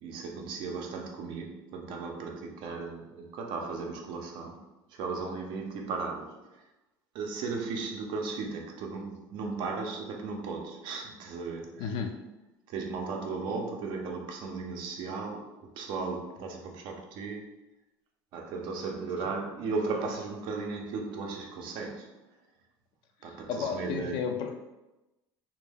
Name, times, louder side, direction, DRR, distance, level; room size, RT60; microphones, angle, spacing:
voice 1, 0.0-6.6 7.1-11.9 12.7-17.6 18.3-22.2 23.2-24.2, right 4 dB, 60° right, 0.5 m, -36 dB
voice 2, 11.8-12.2 23.2-24.5, left 6 dB, 60° left, 0.4 m, -33 dB
2.1 x 2.1 x 3.3 m
supercardioid pair, 115°, 9 cm